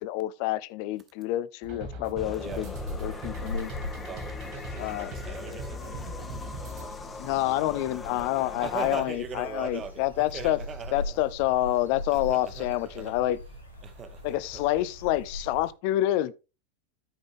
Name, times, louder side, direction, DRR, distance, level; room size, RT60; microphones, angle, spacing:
voice 1, 0.0-2.7 3.0-3.7 4.8-5.2 7.2-10.6 10.9-13.4 14.2-16.3, left 15 dB, 45° left, 0.6 m, -28 dB
sound 1, 1.6-6.8, equal, 40° right, 2.6 m, -39 dB
sound 2, 2.2-9.0, left 4 dB, 15° left, 1.1 m, -42 dB
voice 2, 2.3-2.7 3.6-3.7 4.0-6.1 6.8-7.1 8.6-11.2 12.1-13.2 13.8-14.6, right 6 dB, 25° right, 1.3 m, -40 dB
sound 3, 2.4-15.7, left 1 dB, 85° left, 2.6 m, -41 dB
13.0 x 5.2 x 3.6 m
figure-of-eight pair, 90°, 0 cm